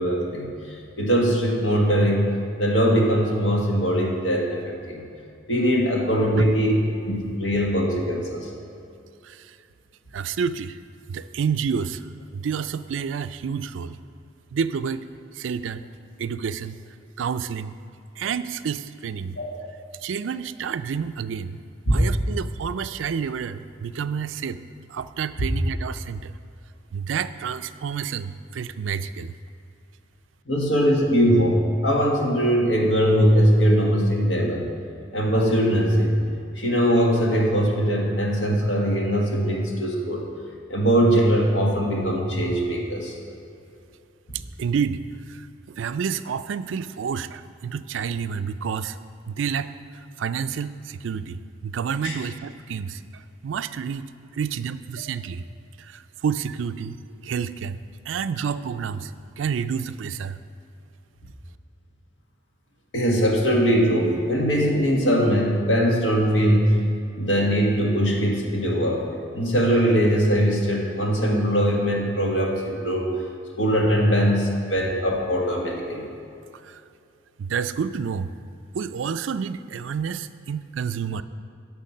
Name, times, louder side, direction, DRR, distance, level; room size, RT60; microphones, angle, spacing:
voice 1, 0.0-2.3 2.6-5.0 5.5-8.5 19.4-19.6 21.9-22.0 25.4-25.5 30.5-34.7 35.1-36.2 36.5-40.2 40.7-43.2 52.0-52.2 62.9-66.8 67.2-69.1 69.3-73.1 73.6-76.1, equal, 70° left, -1 dB, 1.7 m, -21 dB
voice 2, 9.2-9.6 10.1-10.8 11.1-12.1 12.3-14.0 14.5-15.1 15.3-15.8 16.2-16.8 17.2-17.7 18.2-19.4 20.0-21.6 21.9-24.6 24.9-26.4 26.9-29.3 44.3-49.0 49.3-54.1 54.3-55.4 55.8-57.8 58.1-60.4 76.6-76.8 77.4-78.3 78.7-81.2, right 6 dB, 80° right, 12 dB, 0.4 m, -29 dB
10.5 x 6.7 x 5.5 m, 2.6 s
head